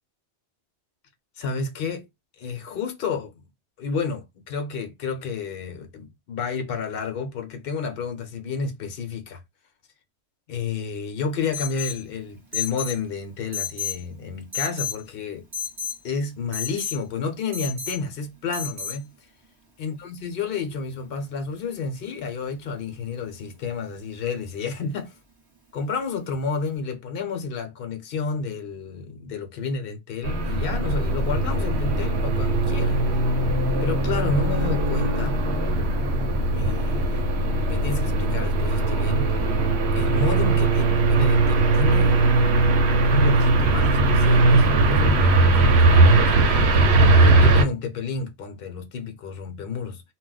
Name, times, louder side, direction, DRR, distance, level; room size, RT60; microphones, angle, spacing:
voice 1, 1.4-2.1 2.4-3.5 3.8-9.4 10.5-15.4 16.0-19.1 19.8-25.1 25.7-33.0 33.8-35.4 36.5-37.3 37.6-39.3 39.9-42.7 43.0-50.0, left 4 dB, 60° left, 0.9 m, -30 dB
Alarm, 11.5-12.0 12.5-13.0 13.5-14.0 14.5-15.0 15.5-16.0 16.5-17.0 17.5-18.0 18.5-19.0, left 7 dB, 25° right, 0.8 m, -31 dB
sound 1, 30.2-47.6, right 2 dB, 75° right, 0.9 m, -19 dB
2.3 x 2.1 x 3.8 m
omnidirectional pair, 1.1 m